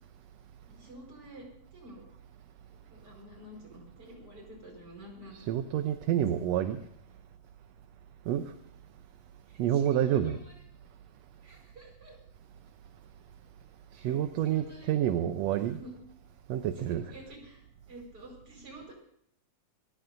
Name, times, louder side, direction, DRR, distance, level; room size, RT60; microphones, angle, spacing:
voice 1, 0.7-2.0 2.7-5.6 9.5-10.5 11.4-12.2 13.9-14.2 14.4-14.9 15.5-15.9 16.8-18.9, right 1 dB, 30° right, 5.4 m, -50 dB
voice 2, 5.3-6.8 8.3-8.4 9.6-10.4 14.0-15.8 16.5-17.1, right 11 dB, 75° right, 1.8 m, -28 dB
26.5 x 14.5 x 2.6 m
omnidirectional pair, 3.4 m